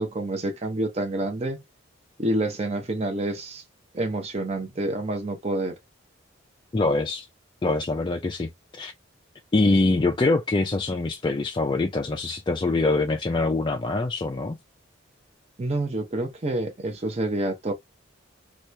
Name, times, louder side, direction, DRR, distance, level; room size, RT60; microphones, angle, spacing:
voice 1, 0.0-1.6 2.2-3.6 3.9-5.8 15.6-17.7, right 1 dB, 30° right, 0.7 m, -28 dB
voice 2, 6.7-7.3 7.6-8.9 9.5-14.6, left 2 dB, 25° left, 0.3 m, -24 dB
2.9 x 2.4 x 3.2 m
head